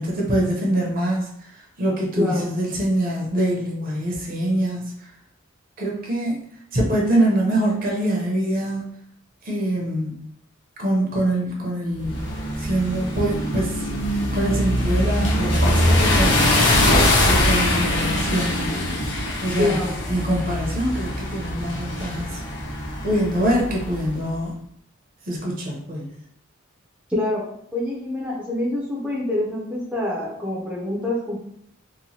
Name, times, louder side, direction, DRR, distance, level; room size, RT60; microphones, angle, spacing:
voice 1, 0.0-4.9 5.8-6.4 6.7-8.9 9.4-10.3 10.8-12.3 12.6-16.7 17.2-18.8 19.4-22.4 23.0-24.6 25.2-26.1, right 1 dB, 45° right, -2 dB, 0.7 m, -24 dB
sound 1, 12.0-24.1, left 1 dB, 55° left, 0.6 m, -22 dB
voice 2, 19.6-19.9 27.1-27.4 27.7-31.4, left 1 dB, 5° right, -6 dB, 0.5 m, -25 dB
2.9 x 2.2 x 2.7 m, 0.71 s
head